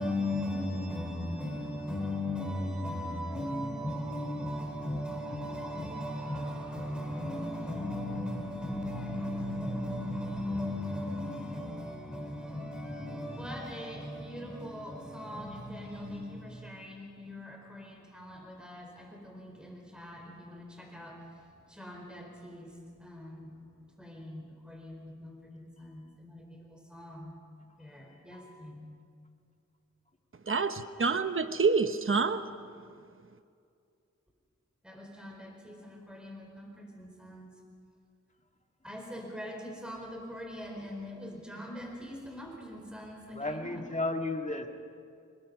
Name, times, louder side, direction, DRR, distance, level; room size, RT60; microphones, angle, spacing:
voice 1, 0.0-21.2 21.7-23.6 24.0-27.3 27.8-29.0 31.0-31.1 34.8-37.5 38.8-43.8, left 1 dB, 5° right, 4.5 m, -38 dB
voice 2, 28.3-28.7 30.5-30.6 43.3-44.7, left 2 dB, 25° left, 1.9 m, -34 dB
voice 3, 30.4-32.4, right 4 dB, 45° right, 0.9 m, -27 dB
27.0 x 21.0 x 5.4 m
wide cardioid pair, 75°, 30 cm